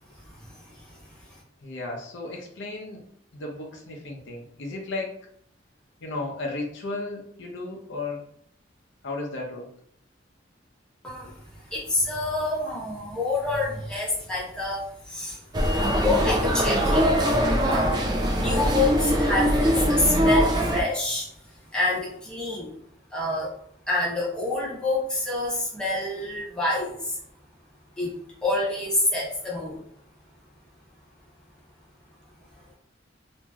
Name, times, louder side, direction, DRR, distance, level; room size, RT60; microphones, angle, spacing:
voice 1, 0.5-0.8 11.0-11.3 11.7-15.4 16.0-17.1 17.6-18.0 18.3-21.3 21.7-22.7 23.1-23.5 23.9-27.2 28.0-28.1 28.4-29.8, left 2 dB, 5° left, -7 dB, 0.8 m, -27 dB
voice 2, 1.6-3.0 3.3-5.1 6.0-8.2 9.0-9.7, left 2 dB, 75° left, 0 dB, 0.7 m, -34 dB
sound 1, 15.5-20.8, equal, 20° right, 0.3 m, -22 dB
3.0 x 2.6 x 2.3 m, 0.68 s
head